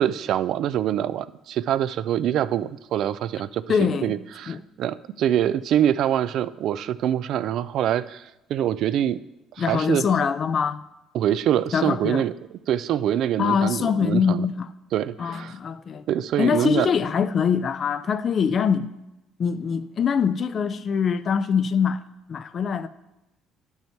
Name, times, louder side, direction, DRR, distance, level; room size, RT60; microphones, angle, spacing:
voice 1, 0.0-9.2 9.6-10.1 11.1-12.3 12.7-14.5 14.9-15.5 16.1-16.9, right 10 dB, 65° right, 0.3 m, -25 dB
voice 2, 3.7-4.2 4.5-4.6 9.6-10.8 11.7-12.2 13.4-14.7 15.2-16.0 16.4-18.9 19.4-22.0 22.3-22.9, left 6 dB, 40° left, 0.4 m, -23 dB
10.5 x 5.5 x 4.5 m
cardioid pair, 105°, 0 cm